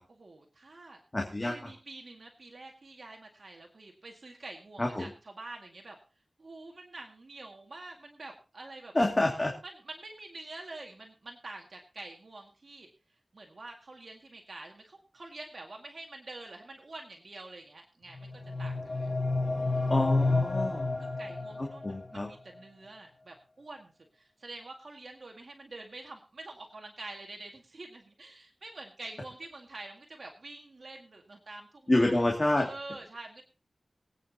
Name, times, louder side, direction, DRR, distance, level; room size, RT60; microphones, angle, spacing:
voice 1, 0.1-1.0 1.4-6.0 6.4-8.9 9.6-12.9 13.3-18.3 18.6-19.1 19.5-19.9 21.0-32.2 32.5-33.5, right 2 dB, 65° right, 1 dB, 2.0 m, -47 dB
voice 2, 1.1-1.5 4.8-5.1 8.9-9.5 19.9-21.0 21.6-22.3 31.9-32.7, left 1 dB, 35° left, 0 dB, 2.3 m, -27 dB
sound 1, 18.1-22.1, left 3 dB, 50° left, 1.5 m, -30 dB
23.5 x 9.2 x 2.9 m, 0.35 s
wide cardioid pair, 85°, 0 cm